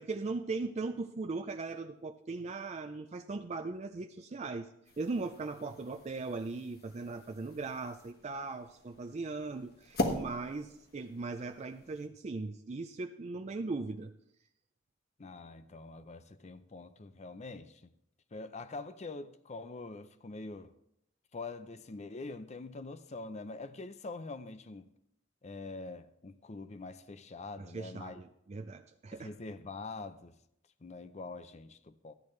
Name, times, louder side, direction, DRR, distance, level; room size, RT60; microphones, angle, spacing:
voice 1, 0.0-4.7 5.0-14.1 27.6-29.3, right 3 dB, 35° right, 0.4 m, -39 dB
sound 1, 4.8-12.1, left 1 dB, 50° left, 1.3 m, -41 dB
voice 2, 15.2-17.9 18.3-20.7 21.3-24.9 25.4-28.2 29.1-30.3 30.8-32.1, left 3 dB, 35° left, 0.6 m, -44 dB
14.0 x 10.5 x 3.2 m
head